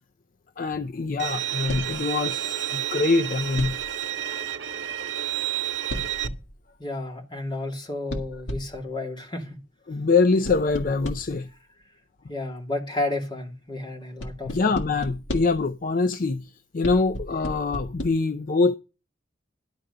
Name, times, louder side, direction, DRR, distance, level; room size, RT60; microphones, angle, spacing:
voice 1, 0.6-3.8 9.9-11.5 14.5-18.7, left 3 dB, 45° left, 0.5 m, -24 dB
Bowed string instrument, 1.2-6.3, right 11 dB, 65° right, 0.8 m, -30 dB
sound 1, 1.7-2.0 3.6-4.0 5.9-6.6 8.1-8.9 10.4-11.4 14.2-15.7 16.8-18.1, left 1 dB, 70° left, 1.9 m, -34 dB
voice 2, 6.8-9.6 12.3-14.6, left 2 dB, 25° left, 2.5 m, -32 dB
11.5 x 4.9 x 6.7 m
head